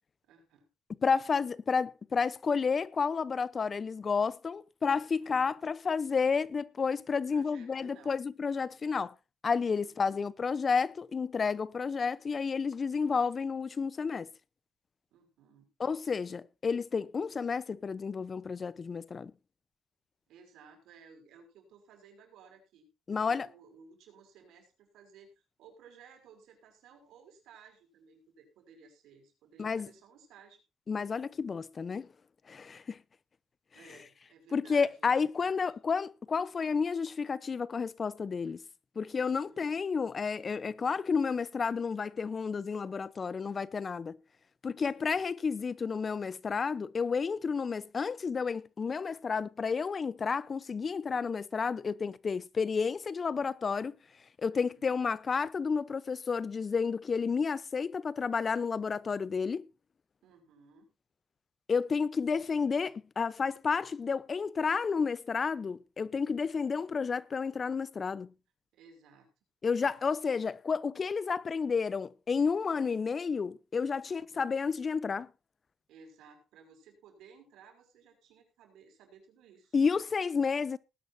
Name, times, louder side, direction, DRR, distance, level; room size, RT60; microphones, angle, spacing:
voice 1, 0.2-0.7 5.2-5.6 7.1-8.1 9.8-10.2 15.1-15.7 20.3-25.3 25.6-30.6 33.7-35.7 39.5-39.7 44.8-45.1 54.5-54.9 60.2-60.9 68.7-69.3 69.6-70.0 74.1-74.5 75.9-79.8, right 5 dB, 85° right, 5.9 m, -58 dB
voice 2, 1.0-9.1 9.4-14.3 15.8-19.3 23.1-23.5 29.6-29.9 30.9-32.1 32.5-33.0 34.5-38.6 39.0-44.2 44.6-53.9 54.4-59.6 61.7-68.3 69.6-75.3 79.7-80.8, left 5 dB, 40° left, 0.8 m, -31 dB
19.0 x 11.0 x 2.7 m
cardioid pair, 90°, 0 cm